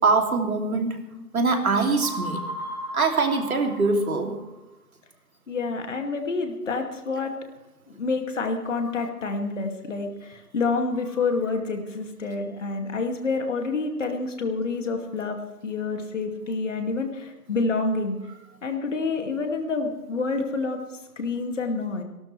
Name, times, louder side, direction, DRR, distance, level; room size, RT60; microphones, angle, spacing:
voice 1, 0.0-1.0 1.3-2.4 2.9-4.3, right 3 dB, 60° right, 3 dB, 3.0 m, -23 dB
sound 1, 2.0-4.6, right 1 dB, 30° right, 5.4 m, -36 dB
voice 2, 5.5-7.3 7.9-18.2 18.6-20.8 21.2-22.0, left 3 dB, 50° left, 4 dB, 2.4 m, -28 dB
26.0 x 12.5 x 3.3 m, 1.0 s
figure-of-eight pair, 160°, 48 cm